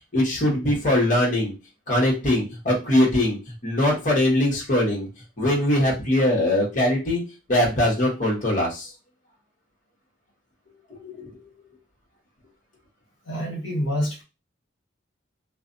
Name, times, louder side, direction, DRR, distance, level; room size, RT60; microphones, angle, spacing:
voice 1, 0.1-1.5 1.9-5.1 5.4-7.2 7.5-8.9 11.0-11.3, left 1 dB, 45° left, -3 dB, 1.0 m, -21 dB
voice 2, 13.3-14.2, equal, 75° left, -2 dB, 0.9 m, -27 dB
2.4 x 2.1 x 2.5 m, 0.29 s
head